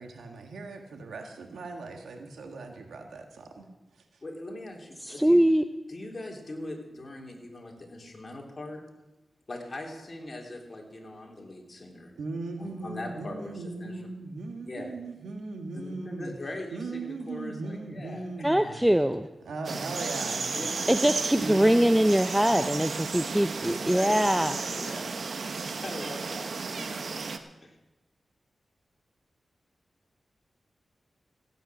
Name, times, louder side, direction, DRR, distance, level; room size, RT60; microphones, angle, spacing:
voice 1, 0.0-3.7 12.2-16.4 16.7-18.8 19.4-20.5 21.4-21.9, right 3 dB, 90° right, 4 dB, 1.6 m, -38 dB
voice 2, 4.2-5.4 5.9-8.8 9.5-12.1 12.6-14.0 14.6-14.9 15.7-18.8 20.5-21.2 23.8-25.2 25.6-27.1 27.6-27.8, left 1 dB, 40° left, 0 dB, 3.5 m, -41 dB
voice 3, 5.0-5.6 18.4-19.3 20.9-24.5, equal, 5° right, 9 dB, 0.6 m, -23 dB
sound 1, 19.6-27.4, right 4 dB, 70° right, 1.0 m, -33 dB
15.5 x 9.1 x 6.3 m, 1.0 s
cardioid pair, 55°, 0 cm